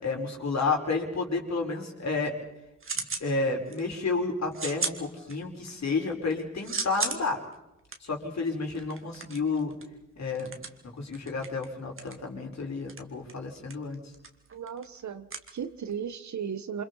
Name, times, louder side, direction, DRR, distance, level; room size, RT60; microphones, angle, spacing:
voice 1, 0.0-2.3 2.9-7.4 8.0-9.7 10.2-10.5 10.8-14.0, left 3 dB, 60° left, 0 dB, 5.0 m, -31 dB
sound 1, 2.5-3.3 3.7-4.1 4.5-5.7 6.1-16.1, right 4 dB, 45° right, 2.1 m, -37 dB
voice 2, 14.5-16.8, right 7 dB, 65° right, 11 dB, 1.4 m, -36 dB
28.0 x 25.5 x 4.1 m, 0.94 s
cardioid pair, 90°, 31 cm